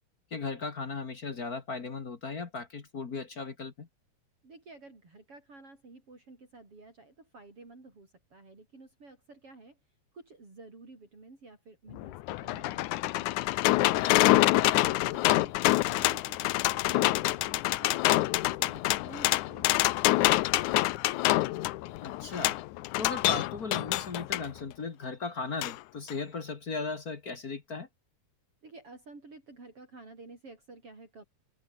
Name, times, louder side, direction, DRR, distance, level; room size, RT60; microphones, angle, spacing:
voice 1, 0.3-3.9 22.0-22.6 23.0-27.9, left 4 dB, 40° left, 1.6 m, -37 dB
voice 2, 4.4-9.8 10.1-13.4 13.8-19.8 28.6-31.2, right 3 dB, 45° right, 7.5 m, -51 dB
sound 1, 11.9-24.5 25.6-25.7 26.1-26.2, left 17 dB, 75° left, 2.1 m, -26 dB
omnidirectional pair, 3.7 m